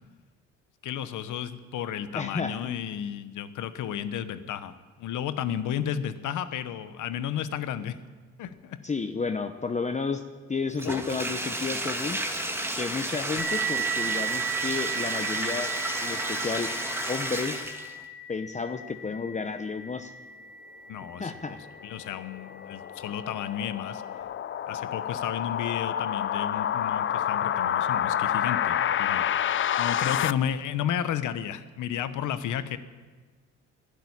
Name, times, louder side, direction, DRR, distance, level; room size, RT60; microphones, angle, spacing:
voice 1, 0.8-4.7 5.0-8.0 8.4-8.8 10.8-11.0 13.3-13.4 20.9-21.3 21.8-24.0 24.7-29.2 29.8-32.8, left 9 dB, 80° left, 12 dB, 1.1 m, -32 dB
voice 2, 2.1-2.6 8.8-10.2 10.5-12.2 12.8-15.7 16.0-16.7 17.1-17.7 18.3-20.1 21.2-21.6, left 4 dB, 25° left, 8 dB, 0.8 m, -31 dB
Bathtub (filling or washing), 10.8-18.0, right 1 dB, 10° right, 1.8 m, -32 dB
sound 1, 13.4-22.6, right 7 dB, 40° right, 4.0 m, -36 dB
sound 2, 21.6-30.3, left 10 dB, 45° left, 0.5 m, -28 dB
12.0 x 12.0 x 9.8 m, 1.4 s
cardioid pair, 90°, 30 cm